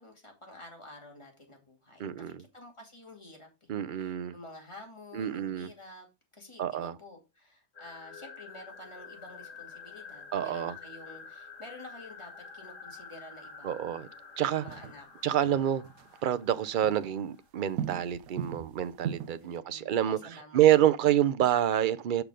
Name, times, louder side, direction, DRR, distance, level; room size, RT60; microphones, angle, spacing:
voice 1, 0.0-3.7 3.9-6.1 6.3-13.8 14.4-15.0 15.5-15.9 19.4-20.9, left 2 dB, 20° left, 2.7 m, -50 dB
voice 2, 2.0-2.4 3.7-4.3 5.1-5.7 6.6-6.9 10.3-10.7 13.6-14.1 14.4-14.6 15.2-15.8 16.2-20.2 20.5-22.2, right 11 dB, 60° right, 0.5 m, -27 dB
sound 1, 7.7-17.4, left 5 dB, 65° left, 2.3 m, -49 dB
sound 2, 9.5-9.7 12.9-13.0 14.7-16.3 16.6-17.3 17.5-19.6, right 9 dB, 80° right, 1.2 m, -40 dB
6.9 x 6.0 x 5.0 m
omnidirectional pair, 1.5 m